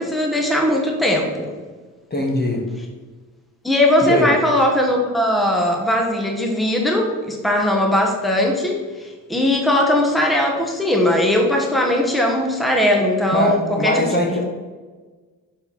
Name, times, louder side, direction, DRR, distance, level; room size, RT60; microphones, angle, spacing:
voice 1, 0.0-1.5 3.6-14.0 14.4-14.5, left 1 dB, ahead, 1 dB, 1.2 m, -19 dB
voice 2, 2.1-2.7 4.0-4.3 13.3-14.4, left 1 dB, 20° left, 1 dB, 1.3 m, -21 dB
6.8 x 4.2 x 4.1 m, 1.3 s
hypercardioid pair, 55°, 44 cm